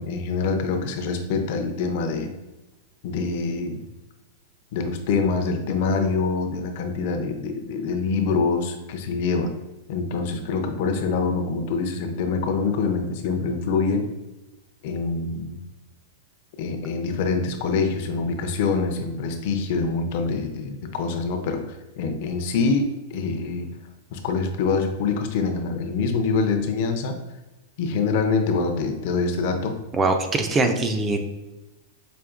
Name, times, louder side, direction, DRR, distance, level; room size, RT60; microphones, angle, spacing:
voice 1, 0.0-2.3 3.0-3.8 4.7-9.5 9.9-14.1 14.8-15.6 16.6-23.7 24.1-27.2 27.8-29.8, left 4 dB, 45° left, 5 dB, 0.5 m, -25 dB
voice 2, 29.9-31.2, right 2 dB, 15° right, 6 dB, 0.3 m, -22 dB
5.0 x 2.6 x 2.4 m, 1.0 s
supercardioid pair, 165°, 0 cm